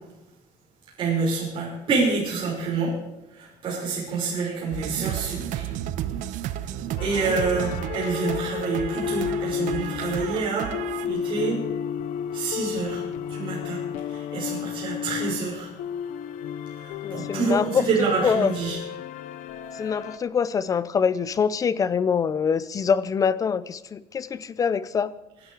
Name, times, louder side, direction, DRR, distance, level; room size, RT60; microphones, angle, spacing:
voice 1, 1.0-3.0 3.3-5.7 7.0-10.7 11.0-11.6 12.3-13.0 13.3-15.7 16.7-18.8, right 4 dB, 40° right, -5 dB, 5.6 m, -27 dB
sound 1, 4.7-11.1, right 11 dB, 80° right, 1.0 m, -32 dB
sound 2, 7.0-20.2, left 8 dB, 80° left, 0.9 m, -32 dB
voice 2, 17.0-18.5 19.8-25.1, left 6 dB, 25° left, 17 dB, 0.6 m, -24 dB
26.0 x 11.0 x 4.9 m, 0.97 s
cardioid pair, 165°, 13 cm